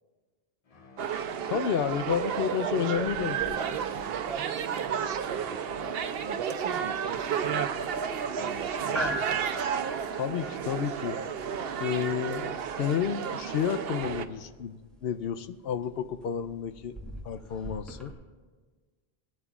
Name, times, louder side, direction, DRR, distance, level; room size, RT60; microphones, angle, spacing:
sound 1, 0.7-11.4, left 4 dB, 40° left, 0.7 m, -50 dB
sound 2, 1.0-14.3, right 8 dB, 75° right, 0.8 m, -32 dB
voice 1, 1.5-3.6 10.1-11.2 11.8-17.0 17.2-18.1, left 8 dB, 75° left, 12 dB, 0.8 m, -31 dB
voice 2, 2.5-9.3, right 7 dB, 45° right, 9 dB, 0.4 m, -40 dB
sound 3, 3.0-18.1, equal, ahead, 1.5 m, -43 dB
19.0 x 12.5 x 2.4 m, 1.4 s
omnidirectional pair, 1.0 m